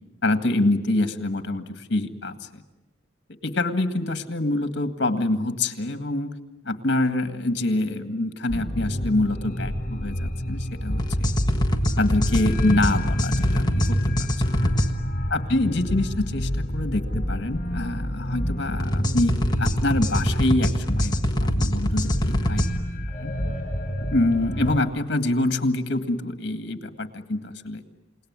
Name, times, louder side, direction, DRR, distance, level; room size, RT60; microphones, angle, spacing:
voice 1, 0.2-2.6 3.4-6.3 6.7-11.3 12.0-14.7 15.3-22.6 23.2-23.3 24.1-27.8, left 2 dB, 60° left, 9 dB, 1.9 m, -26 dB
sound 1, 8.5-24.8, equal, 45° left, 4.3 m, -29 dB
sound 2, 11.0-14.9 18.8-22.7, equal, 20° left, 1.4 m, -24 dB
29.0 x 18.5 x 9.7 m, 1.0 s
head